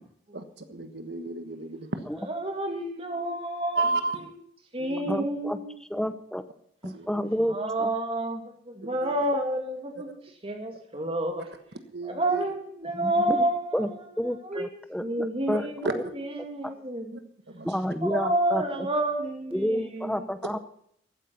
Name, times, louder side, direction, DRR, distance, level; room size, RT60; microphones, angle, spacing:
voice 1, 0.3-2.0 3.7-4.3 4.8-5.1 6.8-7.2 8.8-9.1 11.9-12.4 15.5-15.6 15.8-16.0 17.1-17.2 17.5-17.7, right 3 dB, 60° right, 9 dB, 1.4 m, -32 dB
voice 2, 2.2-4.3 4.7-6.0 7.4-11.5 12.0-14.7 15.0-17.2 18.0-20.3, right 1 dB, 30° right, 3 dB, 2.5 m, -30 dB
voice 3, 5.1-5.6 5.9-6.4 6.8-7.9 13.0-13.4 13.7-13.9 14.2-15.6 16.6-16.7 17.6-18.6 19.5-20.6, equal, 5° left, 10 dB, 0.8 m, -30 dB
14.5 x 9.2 x 7.0 m, 0.68 s
head